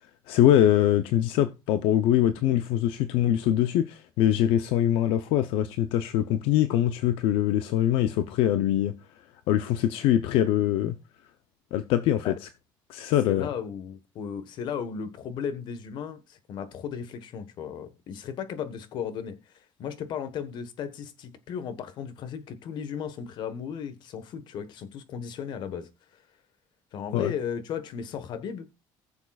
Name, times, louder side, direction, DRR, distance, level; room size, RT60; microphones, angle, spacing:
voice 1, 0.3-8.9 9.5-11.0 11.7-12.3 12.9-13.5 27.1-27.3, left 11 dB, 80° left, 0.6 m, -23 dB
voice 2, 13.3-26.2 26.9-28.7, left 7 dB, 55° left, 1.3 m, -35 dB
19.5 x 7.0 x 2.4 m
cardioid pair, 145°, 9 cm